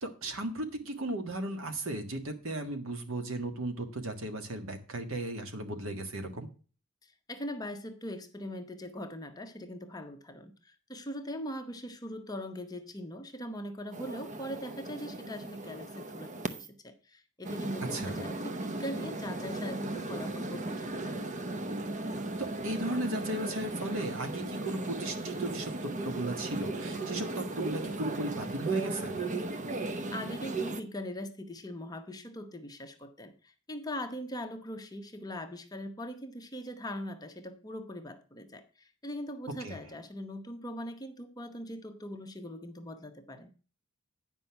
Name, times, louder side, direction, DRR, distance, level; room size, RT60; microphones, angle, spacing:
voice 1, 0.0-6.5 17.8-18.3 22.4-29.2 39.6-39.8, right 1 dB, 70° right, 7 dB, 1.6 m, -36 dB
voice 2, 7.3-21.3 30.1-43.5, equal, 20° left, 6 dB, 1.0 m, -41 dB
sound 1, 13.9-16.7 17.4-30.8, right 2 dB, 35° right, 0.7 m, -36 dB
9.6 x 5.4 x 5.8 m, 0.36 s
head